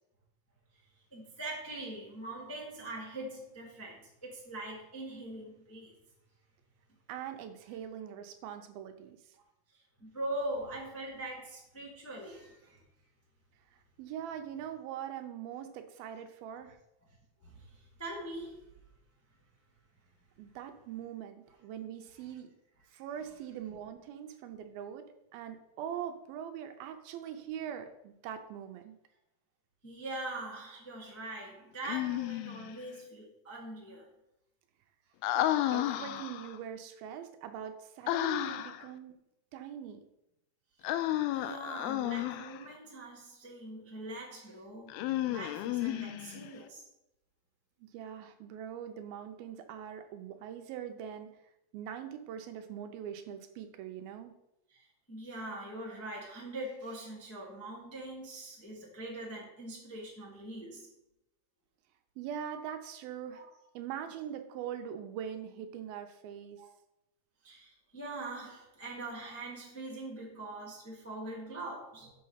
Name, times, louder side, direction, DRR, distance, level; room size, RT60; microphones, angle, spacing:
voice 1, 1.1-5.9 10.0-12.8 17.4-18.7 22.9-23.0 29.8-34.1 41.3-46.8 54.7-60.9 63.3-63.5 66.6-66.7 67.4-72.1, right 1 dB, 10° left, 0.6 m, -42 dB
voice 2, 7.1-9.2 14.0-16.8 20.4-22.5 22.9-25.1 25.3-29.0 35.4-39.2 39.5-40.0 47.8-51.3 51.7-54.3 62.2-63.5 63.7-66.6, right 9 dB, 80° right, 2.5 m, -42 dB
Human voice, 31.8-32.7 35.2-36.6 38.1-38.9 40.8-42.6 44.9-46.5, left 14 dB, 85° left, 2.4 m, -32 dB
6.4 x 6.4 x 5.7 m
omnidirectional pair, 4.4 m